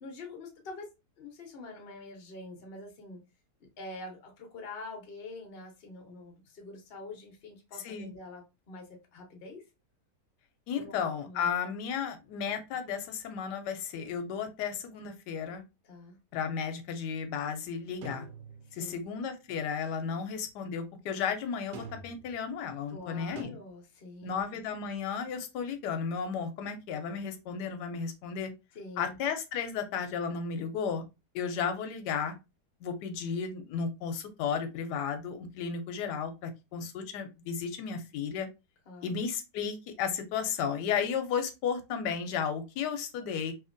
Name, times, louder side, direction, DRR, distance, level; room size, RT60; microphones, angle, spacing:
voice 1, 0.0-0.9 1.2-3.2 3.8-9.6 10.8-11.5 15.8-16.2 18.7-19.0 22.9-24.4 28.7-29.1 38.9-39.2, left 2 dB, 45° left, 0.8 m, -45 dB
voice 2, 10.7-15.6 16.3-18.3 18.7-23.6 24.2-28.5 29.0-31.0 31.3-32.3 32.8-38.5 39.0-43.5, left 6 dB, 85° left, 1.2 m, -34 dB
sound 1, 18.0-19.0 21.7-22.3 23.4-23.5, right 3 dB, 90° right, 1.3 m, -45 dB
2.8 x 2.7 x 2.5 m
omnidirectional pair, 1.7 m